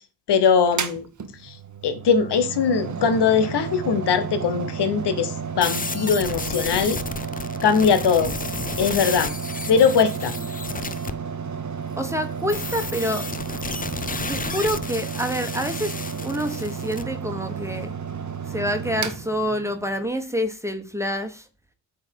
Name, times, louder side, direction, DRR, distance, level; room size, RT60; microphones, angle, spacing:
voice 1, 0.3-1.1 1.4-1.6 1.8-7.0 7.6-8.3 8.8-9.3 9.7-10.3, left 6 dB, 65° left, 1.1 m, -20 dB
Mechanical fan, 0.7-20.1, right 6 dB, 40° right, 1.1 m, -32 dB
sound 1, 5.6-11.1 12.5-17.0, left 4 dB, 20° left, 0.6 m, -32 dB
voice 2, 11.9-13.3 14.3-16.0 16.2-17.9 18.4-21.5, equal, 5° right, 1.4 m, -27 dB
8.6 x 3.8 x 4.6 m
supercardioid pair, 50°, 43 cm